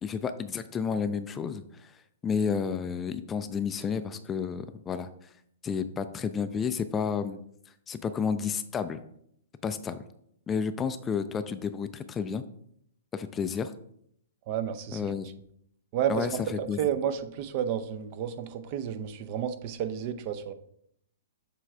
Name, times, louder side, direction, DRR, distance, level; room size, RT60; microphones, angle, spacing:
voice 1, 0.0-1.9 2.2-5.3 5.6-7.4 7.9-9.0 9.6-10.0 10.5-12.4 13.1-13.7 14.9-15.3 16.1-16.3 16.7-16.8, left 6 dB, 15° left, 10 dB, 0.3 m, -31 dB
voice 2, 14.5-15.1 15.9-20.5, right 9 dB, 40° right, 10 dB, 0.5 m, -31 dB
6.9 x 3.2 x 4.6 m, 0.71 s
figure-of-eight pair, 110°, 0 cm